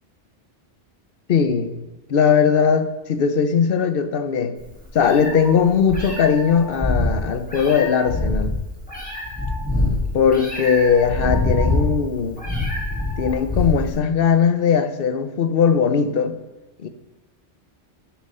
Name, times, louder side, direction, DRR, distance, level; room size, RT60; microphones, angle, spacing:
voice 1, 1.3-1.8 2.1-4.5 4.9-8.5 10.1-12.4 13.2-16.4 16.8-16.9, left 6 dB, 55° left, 10 dB, 1.0 m, -19 dB
Meow, 4.6-14.0, left 2 dB, 5° left, 5.0 m, -25 dB
10.5 x 10.0 x 5.5 m, 1.1 s
omnidirectional pair, 1.2 m